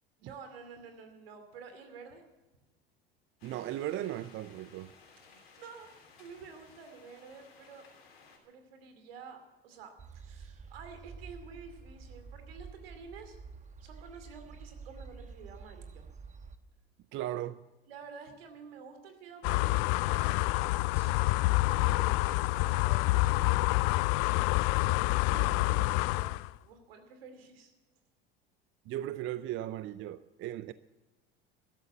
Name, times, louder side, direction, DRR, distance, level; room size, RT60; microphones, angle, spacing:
voice 1, 0.2-2.2 5.6-7.9 8.4-13.4 13.8-16.1 17.9-23.5 25.5-27.7, right 5 dB, 75° right, 2.6 m, -50 dB
sound 1, 3.4-8.4, left 5 dB, 85° left, 3.3 m, -58 dB
voice 2, 3.4-4.9 17.1-17.6 25.3-26.1 28.9-30.7, right 13 dB, 40° right, 0.5 m, -37 dB
sound 2, 10.0-16.6, right 5 dB, 25° right, 1.1 m, -49 dB
sound 3, 19.4-26.5, left 21 dB, 55° left, 0.4 m, -27 dB
13.5 x 12.0 x 7.1 m
hypercardioid pair, 80°, 30 cm